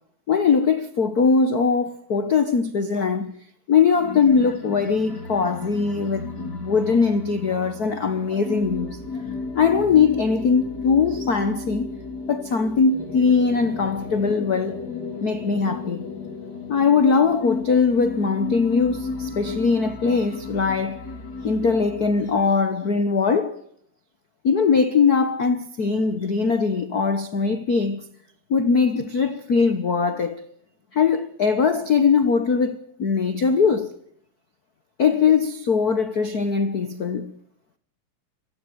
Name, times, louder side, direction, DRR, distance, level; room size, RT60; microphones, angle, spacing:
voice 1, 0.3-3.4 3.7-9.0 9.5-11.9 12.3-14.8 15.2-16.1 16.7-21.1 21.4-23.6 24.4-28.0 28.5-30.4 30.9-34.0 35.0-37.3, left 5 dB, 75° left, 0.8 m, -21 dB
sound 1, 3.9-22.6, left 4 dB, 35° left, 2.6 m, -34 dB
25.0 x 15.0 x 9.6 m
omnidirectional pair, 3.5 m